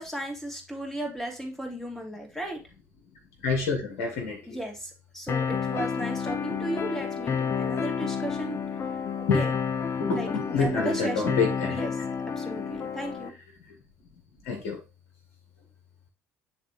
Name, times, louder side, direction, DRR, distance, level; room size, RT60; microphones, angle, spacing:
voice 1, 0.0-2.6 4.5-9.5 10.1-11.4 11.7-11.9 12.4-13.3, right 1 dB, 5° left, 1 dB, 2.5 m, -35 dB
voice 2, 3.4-4.4 9.3-9.4 10.0-11.8 14.4-14.8, left 4 dB, 65° left, 2 dB, 1.4 m, -27 dB
sound 1, 5.3-13.3, left 6 dB, 40° left, 0.6 m, -30 dB
9.5 x 3.4 x 3.1 m, 0.30 s
figure-of-eight pair, 55°, 7 cm